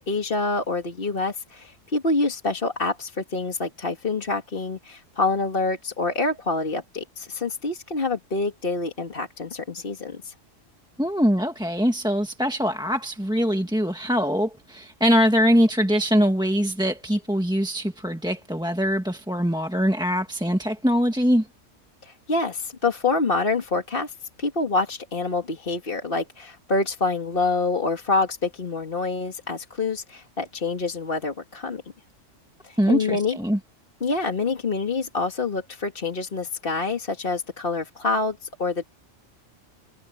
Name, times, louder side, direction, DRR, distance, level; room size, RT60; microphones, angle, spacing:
voice 1, 0.0-10.3 22.0-24.1 24.4-31.8 32.6-33.4 34.0-38.8, left 3 dB, 45° left, 2.0 m, -26 dB
voice 2, 11.0-21.5 32.8-33.6, equal, 5° right, 1.4 m, -22 dB
omnidirectional pair, 1.3 m